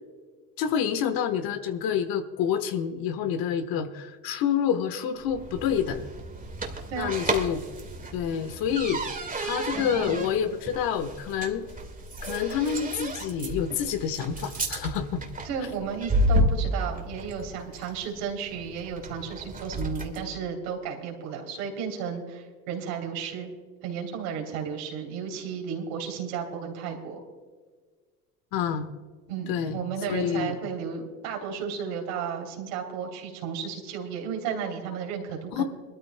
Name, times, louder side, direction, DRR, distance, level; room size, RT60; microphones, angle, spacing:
voice 1, 0.6-6.0 7.0-7.6 8.1-9.0 9.4-11.7 12.2-15.2 28.5-28.9 29.5-30.5 35.5-35.6, left 8 dB, 60° left, 10 dB, 1.3 m, -28 dB
sound 1, 5.2-20.3, right 1 dB, 20° right, 1.9 m, -32 dB
voice 2, 15.4-23.5 23.8-27.2 29.3-35.6, right 7 dB, 75° right, 1 dB, 3.2 m, -33 dB
23.5 x 13.0 x 2.2 m, 1.5 s
hypercardioid pair, 80°, 39 cm